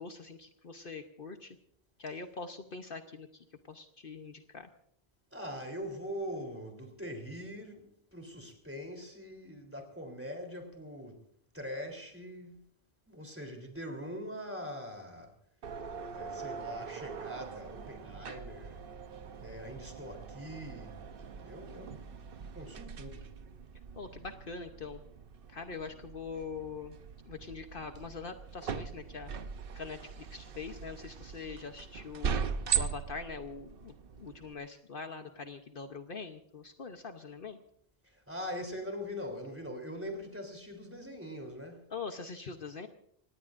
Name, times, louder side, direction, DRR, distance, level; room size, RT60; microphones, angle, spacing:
voice 1, 0.0-1.6 2.0-4.7 24.0-25.0 25.5-27.0 27.3-29.3 29.7-32.3 32.7-37.6 41.9-42.9, left 5 dB, 60° left, 1.1 m, -43 dB
voice 2, 5.3-11.3 11.5-12.6 13.1-15.3 16.1-18.9 19.4-21.0 21.4-23.3 38.0-41.9, equal, 10° right, 3.4 m, -42 dB
sound 1, 15.6-34.5, right 7 dB, 60° right, 1.0 m, -40 dB
26.0 x 18.5 x 2.6 m
omnidirectional pair, 1.1 m